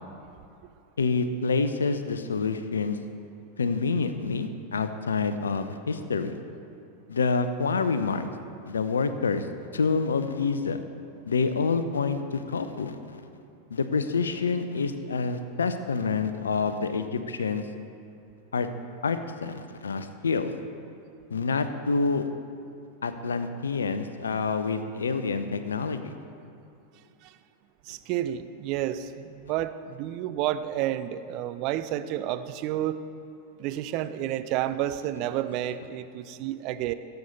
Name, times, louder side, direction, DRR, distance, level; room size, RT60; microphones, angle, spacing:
voice 1, 1.0-3.0 3.6-6.3 7.1-8.3 8.7-9.4 9.7-10.8 11.3-13.2 13.7-17.6 18.5-18.7 19.0-20.5 21.3-22.2 23.0-26.1, left 4 dB, 70° left, 10 dB, 0.7 m, -27 dB
voice 2, 27.9-33.0 33.6-36.9, right 12 dB, 40° right, 12 dB, 0.5 m, -30 dB
17.0 x 8.0 x 4.1 m, 2.6 s
figure-of-eight pair, 90°, 0 cm